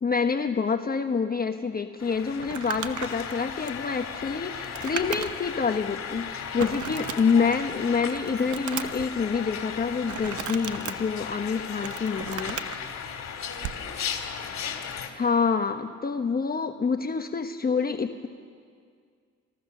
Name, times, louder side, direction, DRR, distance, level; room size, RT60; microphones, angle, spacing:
voice 1, 0.0-12.6 15.2-18.3, left 5 dB, 30° left, 6 dB, 1.1 m, -27 dB
sound 1, 2.0-15.1, left 7 dB, 60° left, 3.1 m, -36 dB
Crumpling crinkling, 2.4-5.6 6.0-6.1 6.6-7.7 8.1-9.1 10.1-10.9 11.6-12.8 13.6-13.8, right 10 dB, 75° right, 1.1 m, -36 dB
voice 2, 11.8-13.3 13.7-14.3, left 1 dB, 10° right, 2 dB, 3.3 m, -50 dB
28.0 x 18.5 x 6.6 m, 2.1 s
cardioid pair, 90°, 30 cm